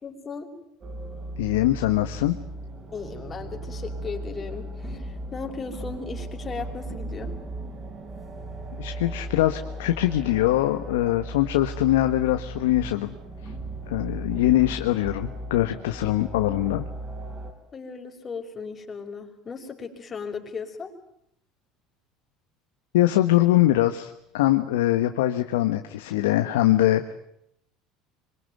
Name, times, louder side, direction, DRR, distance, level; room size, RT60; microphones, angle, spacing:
voice 1, 0.0-0.5 2.9-7.4 16.4-16.7 17.7-20.9, left 5 dB, 30° left, 3 dB, 5.7 m, -36 dB
sound 1, 0.8-17.5, right 1 dB, 30° right, 5.8 m, -36 dB
voice 2, 1.4-2.4 8.8-13.1 13.9-16.9 22.9-27.1, left 14 dB, 85° left, 7 dB, 1.4 m, -22 dB
26.0 x 23.5 x 9.5 m, 0.74 s
supercardioid pair, 90°, 0 cm